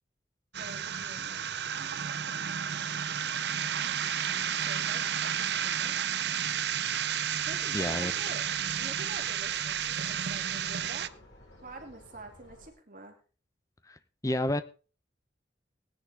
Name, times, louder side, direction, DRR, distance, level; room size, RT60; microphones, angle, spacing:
sound 1, 0.5-11.1, right 9 dB, 65° right, 0.6 m, -32 dB
voice 1, 0.6-1.4 4.4-5.9 6.2-6.4 6.9-7.1 7.5-8.5 8.8-11.2 11.6-13.2, right 2 dB, 45° right, 3 dB, 2.6 m, -47 dB
sound 2, 7.3-12.7, left 1 dB, 70° left, 5.9 m, -55 dB
voice 2, 7.7-8.1 13.8-14.6, left 1 dB, 20° left, 11 dB, 0.9 m, -30 dB
18.5 x 10.5 x 3.5 m, 0.36 s
head